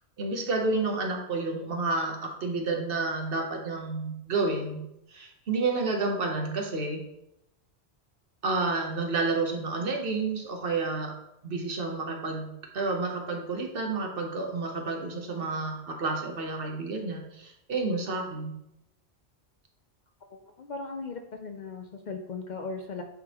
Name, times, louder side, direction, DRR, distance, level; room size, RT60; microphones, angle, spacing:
voice 1, 0.2-4.8 5.1-7.0 8.4-11.1 11.4-12.5 12.7-18.5, right 3 dB, 60° right, 2 dB, 1.1 m, -30 dB
voice 2, 20.3-23.0, left 4 dB, 55° left, 5 dB, 0.6 m, -38 dB
9.2 x 3.7 x 2.9 m, 0.85 s
omnidirectional pair, 1.1 m